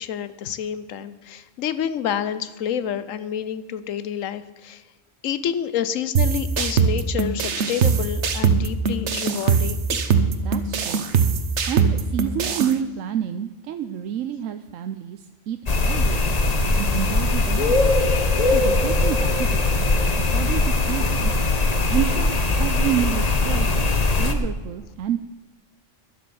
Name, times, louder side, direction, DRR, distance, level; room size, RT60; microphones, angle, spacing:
voice 1, 0.0-4.8 5.2-9.8, left 9 dB, 90° left, 14 dB, 1.1 m, -28 dB
sound 1, 6.2-12.7, right 6 dB, 65° right, 1.3 m, -22 dB
voice 2, 10.4-11.0 11.7-16.3 16.7-18.0 18.4-20.0 20.3-21.3 21.9-23.9 24.2-25.2, right 10 dB, 90° right, 9 dB, 1.0 m, -29 dB
sound 2, 15.7-24.3, left 2 dB, 35° left, 1.1 m, -20 dB
12.0 x 10.5 x 6.9 m, 1.2 s
omnidirectional pair, 1.3 m